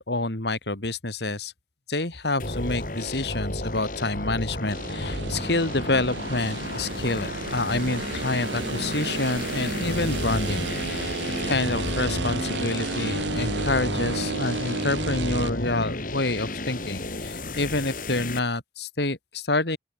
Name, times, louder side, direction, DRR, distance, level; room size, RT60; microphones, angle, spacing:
voice 1, 0.0-1.5 1.9-11.1 11.5-19.8, left 2 dB, 65° left, 2.8 m, -28 dB
sound 1, 2.4-18.4, left 1 dB, 45° left, 4.1 m, -32 dB
sound 2, 4.7-15.5, right 3 dB, 75° right, 1.3 m, -32 dB
open air
head